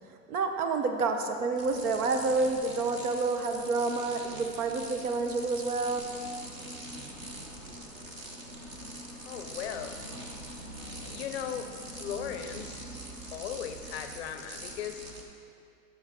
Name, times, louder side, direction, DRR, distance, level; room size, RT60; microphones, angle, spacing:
voice 1, 0.3-6.0, right 3 dB, 75° right, 6 dB, 1.0 m, -29 dB
sound 1, 1.6-15.2, right 1 dB, 25° right, 0.3 m, -43 dB
voice 2, 9.3-10.0 11.1-11.7 12.0-12.8 13.3-15.0, left 9 dB, 45° left, 8 dB, 0.5 m, -37 dB
10.5 x 6.4 x 3.5 m, 2.6 s
supercardioid pair, 155°, 44 cm